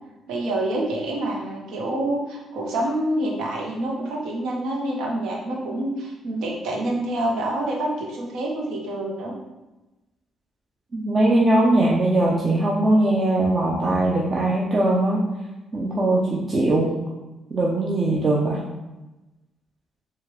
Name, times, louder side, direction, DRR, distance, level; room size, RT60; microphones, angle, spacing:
voice 1, 0.3-9.4, right 1 dB, 85° right, -1 dB, 0.9 m, -27 dB
voice 2, 10.9-15.3 15.7-16.9 17.5-18.6, right 1 dB, 35° right, -4 dB, 0.6 m, -20 dB
4.5 x 2.4 x 3.3 m, 1.0 s
cardioid pair, 90°, 0 cm